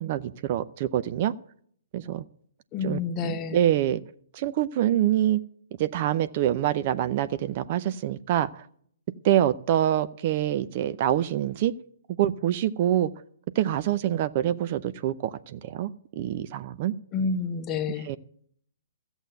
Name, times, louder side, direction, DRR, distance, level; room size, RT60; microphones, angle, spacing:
voice 1, 0.0-1.3 1.9-2.2 2.8-4.0 4.3-5.4 5.8-8.7 9.2-11.7 12.1-13.1 13.6-16.9 18.0-18.2, right 12 dB, 40° right, 13 dB, 0.6 m, -25 dB
voice 2, 2.7-3.6 17.1-18.2, left 5 dB, 25° left, 8 dB, 1.1 m, -29 dB
14.0 x 8.0 x 8.0 m, 0.62 s
figure-of-eight pair, 125°, 0 cm